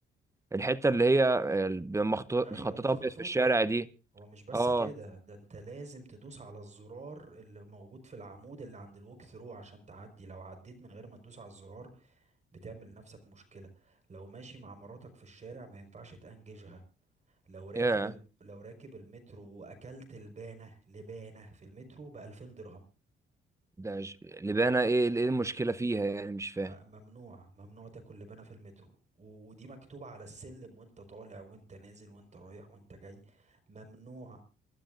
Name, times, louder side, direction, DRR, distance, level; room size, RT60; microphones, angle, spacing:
voice 1, 0.5-3.8 4.5-4.9 17.8-18.1 23.8-26.7, right 2 dB, 15° right, 0.8 m, -28 dB
voice 2, 2.4-3.6 4.1-16.8 17.3-22.9 26.6-28.9 29.2-34.4, right 3 dB, 35° right, 4.8 m, -48 dB
27.5 x 13.0 x 2.5 m
cardioid pair, 90°, 20 cm